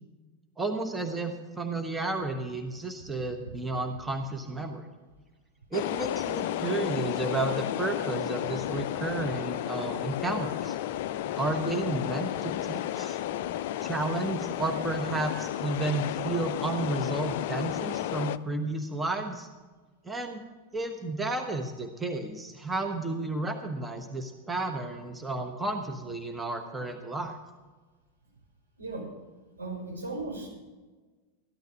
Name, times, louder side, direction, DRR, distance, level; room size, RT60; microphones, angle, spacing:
voice 1, 0.6-4.9 5.7-10.8 11.4-13.2 13.8-19.5 20.0-20.4 20.7-27.4, right 2 dB, 10° right, 5 dB, 1.2 m, -32 dB
sound 1, 5.7-18.4, left 12 dB, 50° left, 0.4 m, -32 dB
voice 2, 29.6-30.5, right 2 dB, 80° right, -3 dB, 5.8 m, -36 dB
13.5 x 12.0 x 5.1 m, 1.3 s
figure-of-eight pair, 90°, 0 cm